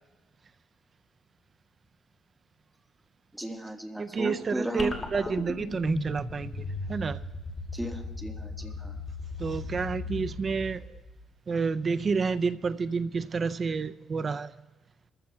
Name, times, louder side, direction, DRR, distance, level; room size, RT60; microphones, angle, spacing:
voice 1, 3.4-4.9 5.2-5.3 7.7-8.9, right 1 dB, 5° right, 3 dB, 1.6 m, -35 dB
voice 2, 4.0-7.2 9.4-11.0 11.5-14.5, right 5 dB, 40° right, 13 dB, 0.5 m, -30 dB
sound 1, 4.8-11.3, left 2 dB, 25° left, 2.3 m, -37 dB
22.0 x 14.5 x 2.3 m, 1.2 s
cardioid pair, 90°, 0 cm